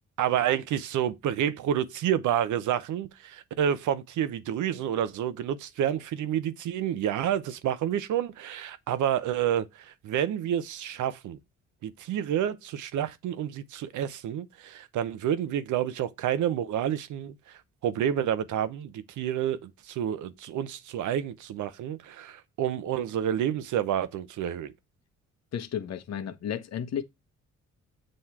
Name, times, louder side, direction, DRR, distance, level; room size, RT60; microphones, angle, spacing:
voice 1, 0.2-11.4 11.8-17.3 17.8-24.7, right 10 dB, 75° right, 0.8 m, -29 dB
voice 2, 25.5-27.0, left 9 dB, 60° left, 1.1 m, -33 dB
7.7 x 3.2 x 5.8 m
cardioid pair, 90°, 30 cm